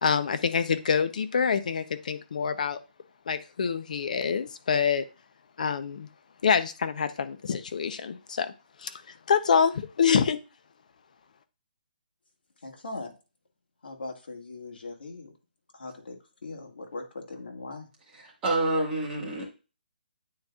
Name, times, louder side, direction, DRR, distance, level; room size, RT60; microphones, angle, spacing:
voice 1, 0.0-2.8 3.3-5.1 5.6-6.1 6.4-8.5 8.8-9.0 9.3-10.4, left 6 dB, 50° left, 0.6 m, -26 dB
voice 2, 12.6-13.1 13.8-15.3 15.7-16.2 16.4-17.9, left 3 dB, 70° left, 1.8 m, -40 dB
voice 3, 18.1-19.4, right 2 dB, 10° right, 1.7 m, -28 dB
9.4 x 4.3 x 2.4 m
hypercardioid pair, 170°, 5 cm